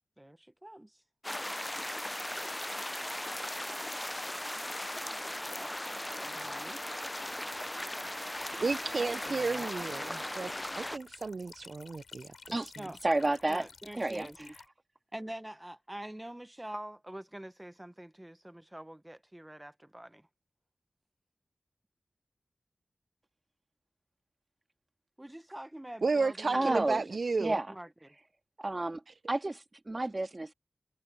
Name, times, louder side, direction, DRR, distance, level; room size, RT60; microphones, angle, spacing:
voice 1, 0.2-1.0 5.6-5.7 6.2-6.8 8.6-8.7 9.0-9.7 12.8-13.0 13.5-14.5 15.1-20.3 25.2-26.8 27.5-27.9, right 1 dB, 15° right, 0.8 m, -45 dB
sound 1, 1.2-11.0, left 1 dB, 15° left, 0.4 m, -38 dB
sound 2, 8.3-14.7, left 5 dB, 90° left, 7.0 m, -53 dB
voice 2, 8.6-12.3 12.6-12.7 26.0-27.6, right 4 dB, 65° right, 0.3 m, -32 dB
voice 3, 13.0-13.6 13.9-14.3 26.5-27.0 27.4-27.7 28.6-29.0 29.3-30.5, right 2 dB, 35° right, 1.8 m, -30 dB
wide cardioid pair, 60°, 0 cm